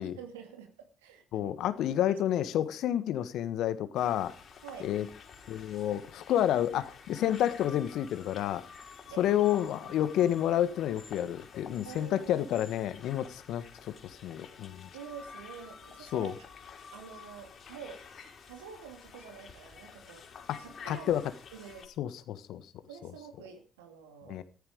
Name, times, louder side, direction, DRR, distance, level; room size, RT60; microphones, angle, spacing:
voice 1, 0.0-1.6 2.1-2.2 2.5-2.6 4.6-4.9 9.1-9.4 9.8-10.0 11.8-12.3 14.9-16.5 16.9-18.0 18.5-20.2 20.6-21.2 21.5-21.9 22.9-24.4, right 7 dB, 85° right, 2.6 m, -47 dB
voice 2, 1.3-4.3 4.8-5.1 5.5-8.6 9.2-14.9 16.1-16.3 20.5-20.6 20.9-21.2 22.0-22.6 24.3-24.4, left 11 dB, 65° left, 1.5 m, -30 dB
sound 1, 3.9-21.9, left 6 dB, 50° left, 4.4 m, -50 dB
14.5 x 13.5 x 5.0 m
hypercardioid pair, 50°, 0 cm